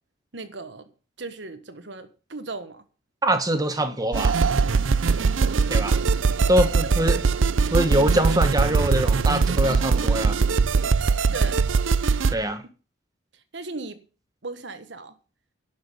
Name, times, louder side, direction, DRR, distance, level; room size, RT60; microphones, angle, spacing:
voice 1, 0.3-0.9 1.2-2.8 6.8-6.9 11.3-11.6 13.5-14.0 14.4-15.1, right 3 dB, 65° right, 1.3 m, -36 dB
voice 2, 3.2-4.4 5.7-6.0 6.5-7.2 7.7-10.4 12.3-12.6, right 1 dB, 20° right, 1.4 m, -23 dB
sound 1, 4.1-12.3, right 4 dB, 85° right, 0.6 m, -21 dB
11.5 x 6.2 x 8.7 m
head